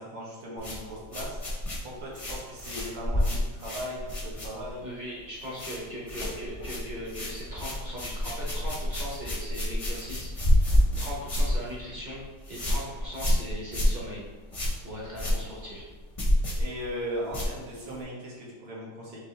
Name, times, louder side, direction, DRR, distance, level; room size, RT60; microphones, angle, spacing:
voice 1, 0.0-1.4 1.8-4.8 16.6-19.2, equal, 70° right, -5 dB, 1.9 m, -38 dB
sound 1, 0.6-4.9 5.2-5.8 6.1-18.0, left 1 dB, 30° left, 0.6 m, -29 dB
voice 2, 4.8-12.2 12.5-14.2 14.8-15.9, equal, 30° right, -6 dB, 0.9 m, -39 dB
6.0 x 2.7 x 3.2 m, 1.3 s
omnidirectional pair, 2.1 m